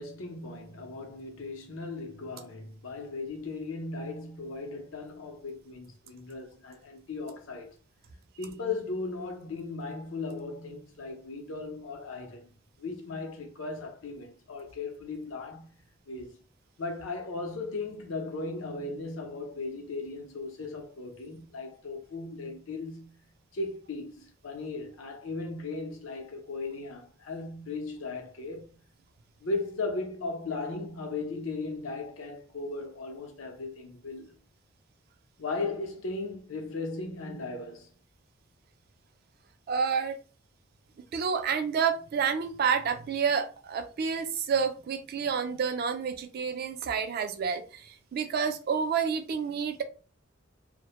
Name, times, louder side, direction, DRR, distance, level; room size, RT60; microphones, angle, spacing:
voice 1, 0.0-7.7 8.4-12.5 12.8-15.8 16.1-16.4 16.8-23.1 23.5-28.8 29.4-34.3 35.4-37.9, left 3 dB, 85° left, 0.6 m, -37 dB
voice 2, 39.7-40.2 41.1-49.8, right 6 dB, 50° right, 0.3 m, -29 dB
2.1 x 2.0 x 2.9 m
head